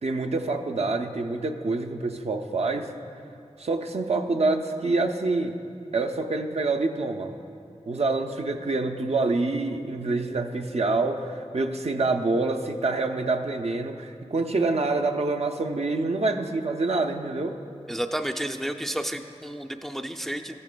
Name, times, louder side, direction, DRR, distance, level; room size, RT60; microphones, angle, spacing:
voice 1, 0.0-2.9 3.6-5.6 5.9-7.3 7.9-17.6, right 3 dB, 65° right, 5 dB, 0.5 m, -26 dB
voice 2, 17.9-20.5, right 1 dB, 5° left, 5 dB, 0.4 m, -31 dB
14.0 x 10.5 x 2.2 m, 2.5 s
wide cardioid pair, 70°, 12 cm